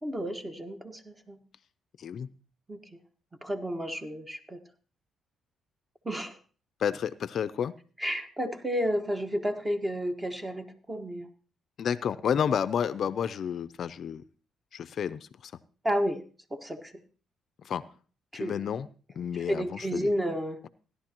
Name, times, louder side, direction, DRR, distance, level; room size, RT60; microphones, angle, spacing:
voice 1, 0.0-1.4 2.7-3.0 3.4-4.6 6.0-6.4 8.0-11.3 15.8-16.2 16.5-16.9 18.3-18.6 19.5-20.6, equal, 15° right, 7 dB, 1.5 m, -31 dB
voice 2, 6.8-7.8 11.8-14.2 14.7-15.5 17.6-17.9 18.3-18.9 19.2-20.1, left 8 dB, 60° left, 14 dB, 0.5 m, -30 dB
16.5 x 11.0 x 3.0 m, 0.38 s
cardioid pair, 90°, 0 cm